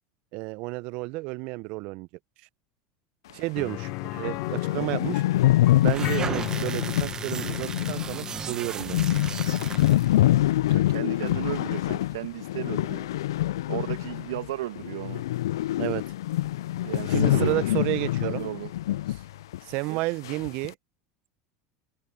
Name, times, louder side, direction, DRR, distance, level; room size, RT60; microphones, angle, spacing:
voice 1, 0.3-2.1 3.3-5.2 5.8-9.2 15.8-16.0 17.1-18.4 19.6-20.7, right 24 dB, 60° right, 0.8 m, -31 dB
sound 1, 3.6-3.7 4.0-4.1 4.3-14.5 14.8-19.2 19.5-19.6 20.2-20.7, left 14 dB, 75° left, 0.4 m, -25 dB
sound 2, 3.6-13.3 13.6-13.7 16.2-16.3, left 23 dB, 60° left, 1.5 m, -39 dB
sound 3, 5.8-10.2, right 7 dB, 30° right, 1.4 m, -36 dB
voice 2, 10.7-13.1 13.7-15.2 16.8-18.7 19.9-20.2, right 15 dB, 75° right, 2.3 m, -35 dB
hypercardioid pair, 85°, 2 cm